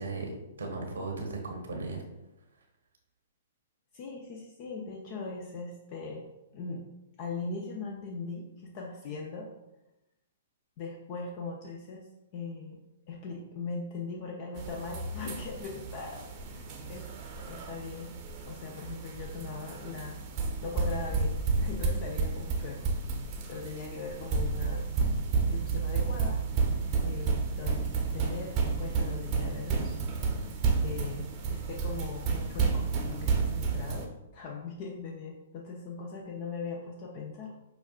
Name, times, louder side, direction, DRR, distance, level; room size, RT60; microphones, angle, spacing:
voice 1, 0.0-2.0, right 3 dB, 80° right, 1 dB, 0.9 m, -36 dB
voice 2, 3.9-6.3 6.5-6.8 7.2-9.5 10.8-12.0 12.3-12.8 13.1-18.2 18.4-20.2 20.6-22.9 23.5-24.9 25.3-26.4 27.0-27.9 28.1-30.0 30.8-37.5, left 4 dB, 45° left, -1 dB, 0.6 m, -40 dB
sound 1, 14.6-34.1, right 4 dB, 35° right, 0.7 m, -31 dB
6.0 x 2.4 x 2.3 m, 0.94 s
hypercardioid pair, 120°, 0 cm